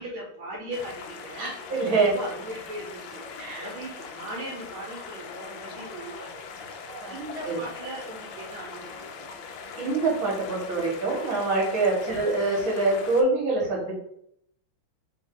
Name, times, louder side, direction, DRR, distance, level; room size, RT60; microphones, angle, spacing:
voice 1, 0.0-1.5 1.9-3.2 3.5-9.1 12.0-12.1, right 1 dB, 75° right, -2 dB, 1.6 m, -39 dB
sound 1, 0.7-13.2, left 5 dB, 75° left, 1.2 m, -41 dB
voice 2, 1.4-2.1 3.4-3.7 6.8-7.2 7.4-7.6 9.8-13.9, right 3 dB, 45° right, -3 dB, 1.6 m, -25 dB
3.8 x 2.7 x 3.7 m, 0.71 s
omnidirectional pair, 2.4 m